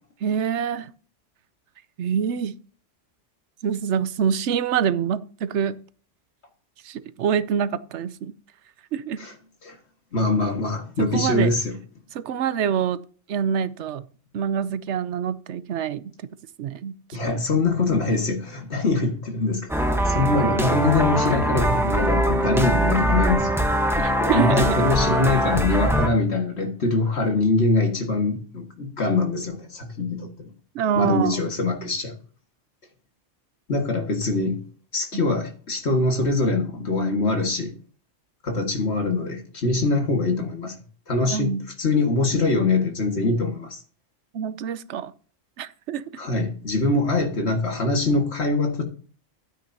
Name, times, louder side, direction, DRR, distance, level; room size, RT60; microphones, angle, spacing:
voice 1, 0.2-0.9 2.0-2.6 3.6-5.8 6.8-8.3 8.9-9.2 11.0-11.5 12.1-13.0 13.3-14.0 14.3-16.1 16.6-16.9 24.0-24.8 30.7-31.4 41.3-41.6 44.3-45.1 45.6-46.0, right 8 dB, 75° right, 0.9 m, -25 dB
voice 2, 10.1-11.7 17.1-19.7 20.1-23.6 24.2-30.5 31.0-32.2 33.7-34.6 34.9-37.7 38.4-40.7 41.1-43.8 46.2-48.8, left 3 dB, 60° left, 2.0 m, -23 dB
sound 1, 19.7-26.1, right 1 dB, ahead, 1.0 m, -22 dB
12.0 x 9.1 x 2.7 m
omnidirectional pair, 1.2 m